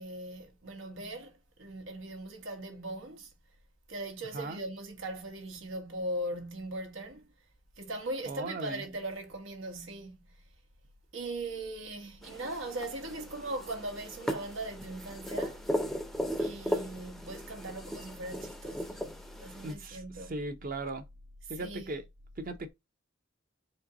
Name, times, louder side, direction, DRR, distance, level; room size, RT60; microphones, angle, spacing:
voice 1, 0.0-3.3 3.9-7.3 7.8-10.2 11.1-15.6 16.4-20.4 21.4-21.9, right 1 dB, 85° right, 1.4 m, -39 dB
voice 2, 8.3-8.8 19.6-21.0 21.5-22.0 22.4-22.7, right 2 dB, 45° right, 0.8 m, -38 dB
sound 1, 12.2-19.7, equal, ahead, 0.5 m, -37 dB
4.4 x 2.7 x 3.8 m
head